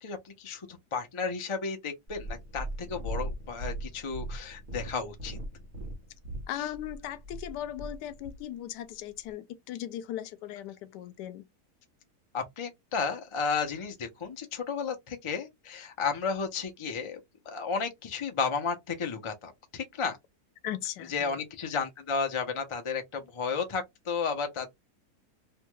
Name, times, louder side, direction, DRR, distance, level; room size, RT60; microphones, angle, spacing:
voice 1, 0.0-5.4 6.6-6.7 12.3-17.2 17.5-20.2 21.1-24.7, left 5 dB, 55° left, 0.3 m, -33 dB
Purr, 2.1-8.4 9.1-9.2, right 1 dB, 45° right, 1.1 m, -39 dB
voice 2, 6.5-11.4 20.6-21.4, left 12 dB, 85° left, 1.2 m, -38 dB
3.1 x 2.2 x 3.0 m
omnidirectional pair, 1.8 m